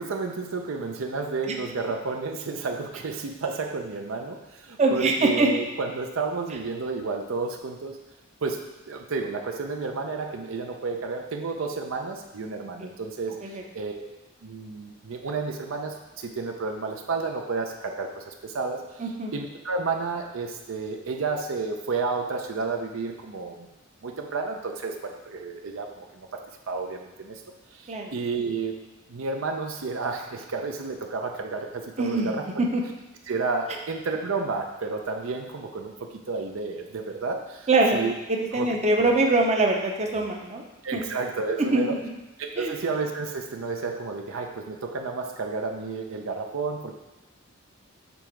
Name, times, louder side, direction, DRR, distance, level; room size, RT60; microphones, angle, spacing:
voice 1, 0.0-8.0 8.4-14.0 14.4-23.7 24.0-26.4 26.7-27.4 27.7-28.8 29.1-32.5 33.3-38.1 38.5-38.7 40.8-42.0 42.4-47.0, right 4 dB, 70° right, 3 dB, 0.5 m, -31 dB
voice 2, 4.8-5.6 12.8-12.9 13.4-13.6 19.0-19.3 27.9-28.1 32.0-32.8 37.7-38.0 38.3-40.6 40.9-41.0 41.7-41.8 42.6-42.7, right 2 dB, 30° right, 1 dB, 0.7 m, -23 dB
6.9 x 3.6 x 4.5 m, 1.1 s
head